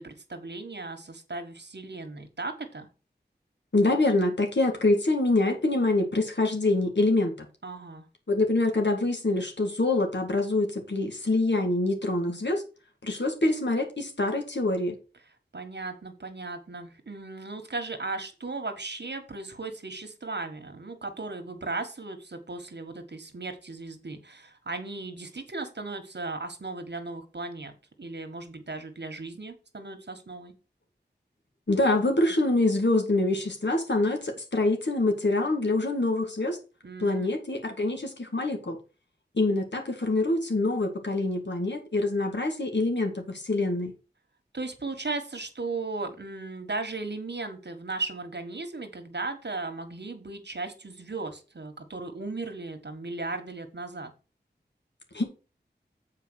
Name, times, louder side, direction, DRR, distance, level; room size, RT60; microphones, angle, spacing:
voice 1, 0.0-2.9 7.6-8.0 15.5-30.5 36.8-37.3 44.5-54.1, right 3 dB, 70° right, 1.6 m, -36 dB
voice 2, 3.7-7.5 8.3-12.6 13.0-15.0 31.7-36.6 37.0-38.8 39.3-43.9 55.1-55.2, left 2 dB, 75° left, 2.1 m, -25 dB
7.5 x 4.8 x 6.4 m
wide cardioid pair, 45°, 18 cm